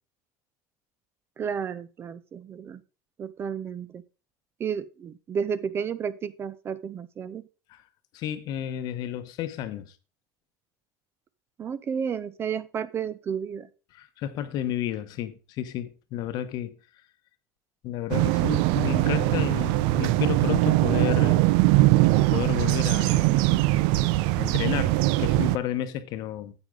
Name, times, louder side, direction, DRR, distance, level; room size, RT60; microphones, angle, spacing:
voice 1, 1.4-2.8 3.2-4.0 4.6-7.5 11.6-13.7, right 7 dB, 30° right, 0.6 m, -32 dB
voice 2, 8.1-9.9 13.9-16.7 17.8-21.4 22.3-23.3 24.4-26.5, left 11 dB, 50° left, 1.0 m, -31 dB
sound 1, 18.1-25.6, right 18 dB, 70° right, 0.5 m, -21 dB
9.6 x 8.1 x 3.8 m
cardioid pair, 150°, 9 cm